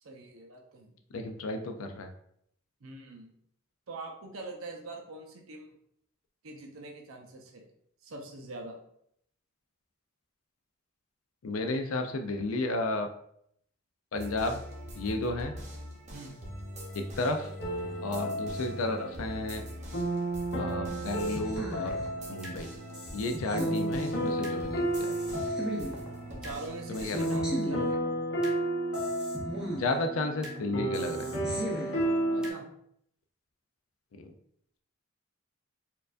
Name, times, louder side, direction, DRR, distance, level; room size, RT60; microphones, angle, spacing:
voice 1, 0.0-1.0 2.8-3.3 3.9-5.7 6.4-7.7 8.0-8.7 16.1-16.4 18.2-18.4 26.3-28.0 32.3-32.7, right 2 dB, 80° right, 1 dB, 0.7 m, -43 dB
voice 2, 1.1-2.1 11.4-13.1 14.1-14.6 15.0-15.5 16.9-17.5 18.0-19.6 20.5-22.0 22.3-22.7 23.1-25.1 26.9-27.3 29.7-31.3 34.2-34.3, left 2 dB, 85° left, 6 dB, 0.5 m, -32 dB
sound 1, 14.1-27.3, equal, 35° right, 0.8 m, -43 dB
sound 2, 17.6-32.5, right 1 dB, 60° left, 0.8 m, -33 dB
sound 3, 21.0-22.6 22.9-24.6 24.9-26.6 26.9-28.6 28.9-30.6 30.9-32.6, equal, 5° right, 0.6 m, -39 dB
4.4 x 2.5 x 2.4 m, 0.71 s
head